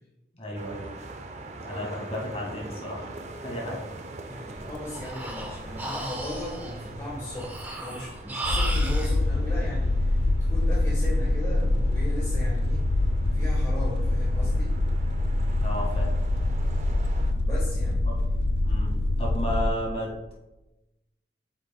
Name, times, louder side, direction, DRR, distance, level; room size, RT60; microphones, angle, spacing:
voice 1, 0.3-0.9 1.6-3.1 3.4-3.8 15.6-16.1 18.0-18.1 18.6-18.9 19.2-20.3, equal, 35° left, -3 dB, 1.9 m, -33 dB
sound 1, 0.5-17.3, right 2 dB, 40° right, 0.5 m, -42 dB
voice 2, 1.6-1.9 3.6-3.8 4.2-7.5 7.8-13.0 13.3-14.7 16.7-16.8 17.3-18.0, left 1 dB, 15° left, -6 dB, 1.4 m, -38 dB
Breathing, 4.6-9.1, right 2 dB, 10° right, 0.7 m, -35 dB
sound 2, 8.4-19.7, left 2 dB, 75° left, 0.5 m, -25 dB
8.6 x 6.6 x 2.3 m, 1.0 s
head